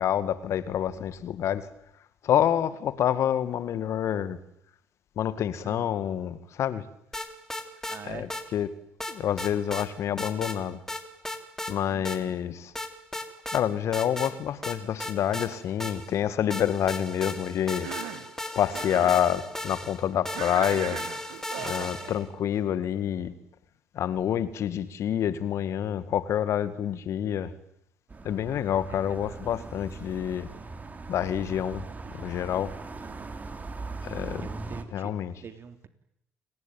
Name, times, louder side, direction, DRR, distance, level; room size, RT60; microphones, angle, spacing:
voice 1, 0.0-1.7 2.2-4.4 5.2-6.8 8.0-8.7 9.1-10.8 11.7-12.7 13.5-17.9 18.1-18.2 18.6-21.0 21.6-23.3 23.9-27.5 28.2-30.5 31.1-32.7 34.0-34.5 34.9-35.3, left 10 dB, 60° left, 14 dB, 2.1 m, -28 dB
sound 1, 7.1-8.0 8.3-8.4 9.0-9.9 10.2-10.6 10.9-11.7 12.1-12.2 12.8-13.6 13.9-14.3 14.6-16.2 16.5-22.3, left 1 dB, 10° left, 3.9 m, -36 dB
voice 2, 7.9-8.3 11.9-12.4 21.8-22.4 28.9-29.4 33.0-33.3 34.4-35.1 35.4-35.9, right 7 dB, 45° right, 10 dB, 3.3 m, -45 dB
Cough, 17.7-18.3 18.7-19.2 20.3-22.0, right 14 dB, 75° right, 2.1 m, -38 dB
sound 2, 28.1-34.8, right 3 dB, 30° right, 3.4 m, -40 dB
29.0 x 19.5 x 9.3 m, 0.74 s
hypercardioid pair, 60°, 6 cm